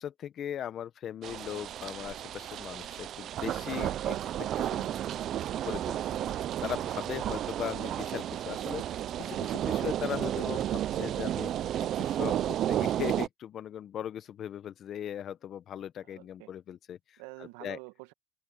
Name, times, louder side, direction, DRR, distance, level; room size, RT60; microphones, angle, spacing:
voice 1, 0.0-4.3 4.5-4.9 5.6-6.0 6.6-11.7 12.0-17.0 17.6-17.8, left 10 dB, 45° left, 1.4 m, -39 dB
sound 1, 1.2-13.3, right 11 dB, 50° right, 0.7 m, -32 dB
voice 2, 6.1-6.6 16.0-16.5 17.2-18.1, right 22 dB, 75° right, 1.6 m, -48 dB
open air
supercardioid pair, 100°, 0 cm